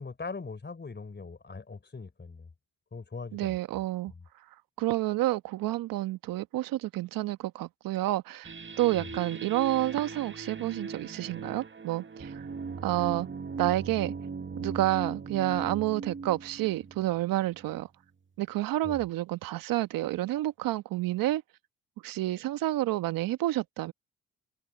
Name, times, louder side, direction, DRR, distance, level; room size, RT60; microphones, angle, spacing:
voice 1, 0.0-2.5 2.9-3.6 4.1-4.2 8.9-9.1 18.8-19.0, left 4 dB, 30° left, 4.1 m, -41 dB
voice 2, 3.3-4.1 4.8-12.4 12.8-13.3 13.6-14.1 14.6-17.9 18.4-21.4 22.0-23.9, right 16 dB, 70° right, 1.4 m, -29 dB
sound 1, 8.4-17.8, right 5 dB, 35° right, 2.0 m, -39 dB
hypercardioid pair, 55°, 35 cm